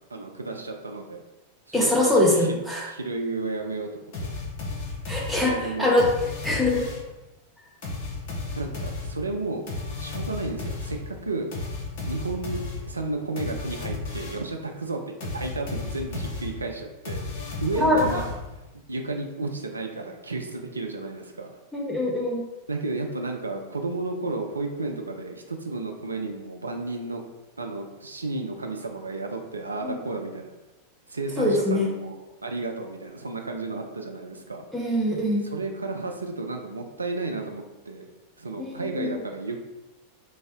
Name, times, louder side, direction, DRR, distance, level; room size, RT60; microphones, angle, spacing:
voice 1, 0.1-1.2 1.7-4.3 5.5-6.0 8.5-9.7 10.0-11.5 12.0-17.2 17.6-18.3 18.9-21.5 22.7-27.2 27.6-30.5 31.1-34.6 35.5-38.1 38.4-39.6, right 3 dB, 80° right, 3 dB, 0.3 m, -32 dB
voice 2, 1.7-2.8 5.1-6.1 6.4-6.8 17.8-18.1 21.7-22.4 29.8-30.0 31.4-31.9 34.7-35.4 38.6-39.2, left 1 dB, ahead, -4 dB, 0.7 m, -23 dB
sound 1, 4.1-7.2 7.8-14.6 15.2-18.7, left 3 dB, 50° left, 0.7 m, -34 dB
2.6 x 2.1 x 3.4 m, 1.0 s
figure-of-eight pair, 90°, 0 cm